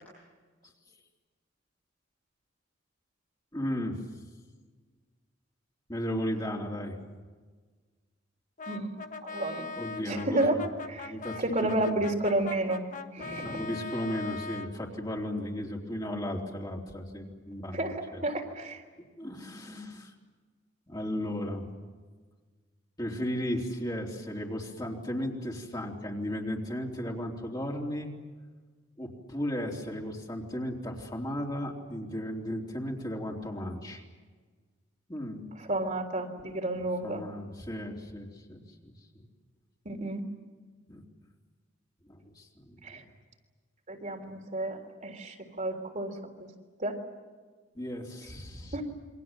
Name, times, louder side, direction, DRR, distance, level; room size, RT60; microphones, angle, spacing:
voice 1, 3.5-4.0 5.9-7.0 9.8-10.6 11.0-11.4 11.6-12.0 13.3-18.2 19.2-20.1 20.9-21.7 23.0-28.1 29.0-34.0 35.1-35.5 37.0-39.3 40.9-41.0 42.1-43.1 47.8-48.8, equal, 20° left, -1 dB, 3.6 m, -35 dB
Brass instrument, 8.6-14.8, left 4 dB, 45° left, 1.5 m, -41 dB
voice 2, 9.2-9.7 10.1-10.6 10.9-12.8 13.1-13.7 17.7-18.0 18.2-18.8 35.6-37.2 39.9-40.2 42.8-43.0 43.9-46.5 46.8-47.0 48.7-48.8, right 2 dB, 40° right, 2 dB, 3.6 m, -31 dB
28.5 x 24.0 x 7.6 m, 1.4 s
head